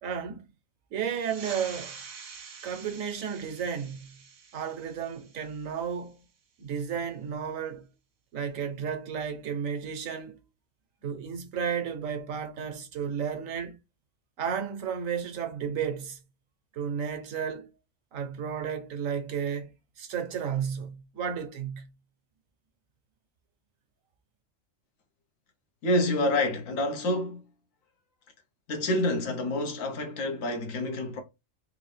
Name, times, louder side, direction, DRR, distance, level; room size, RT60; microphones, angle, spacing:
voice 1, 0.0-0.5 0.9-2.0 2.6-4.1 4.5-6.2 6.6-7.9 8.3-10.4 11.0-13.8 14.4-16.2 16.7-17.7 18.1-19.7 20.0-21.9, right 7 dB, 90° right, 1.2 m, -33 dB
sound 1, 1.1-6.2, right 6 dB, 50° right, 0.8 m, -46 dB
voice 2, 25.8-27.4 28.7-31.2, left 1 dB, 80° left, 1.3 m, -28 dB
3.6 x 2.6 x 3.3 m
omnidirectional pair, 1.4 m